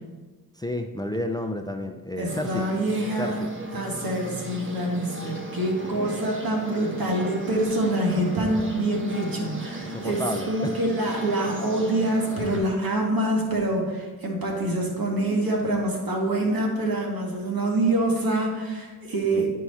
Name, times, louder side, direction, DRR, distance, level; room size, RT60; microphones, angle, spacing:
voice 1, 0.5-2.6 3.2-3.8 5.8-6.0 9.8-10.8 19.3-19.5, left 1 dB, 10° left, 6 dB, 0.5 m, -31 dB
voice 2, 2.2-3.4 3.7-19.5, right 1 dB, 65° right, -1 dB, 2.0 m, -26 dB
sound 1, 2.3-12.6, right 2 dB, 30° right, 1.4 m, -36 dB
10.5 x 4.7 x 4.2 m, 1.3 s
cardioid pair, 65°, 37 cm